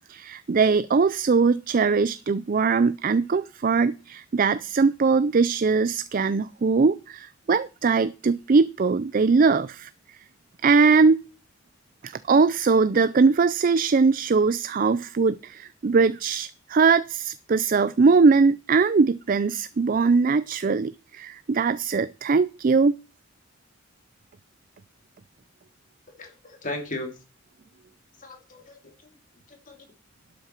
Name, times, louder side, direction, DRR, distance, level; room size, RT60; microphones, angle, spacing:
voice 1, 0.1-9.9 10.6-11.2 12.0-23.0, right 4 dB, 45° right, 0.4 m, -21 dB
voice 2, 26.2-27.2 28.2-28.9 29.5-29.8, left 2 dB, 40° left, 2.9 m, -36 dB
12.0 x 8.0 x 4.5 m
head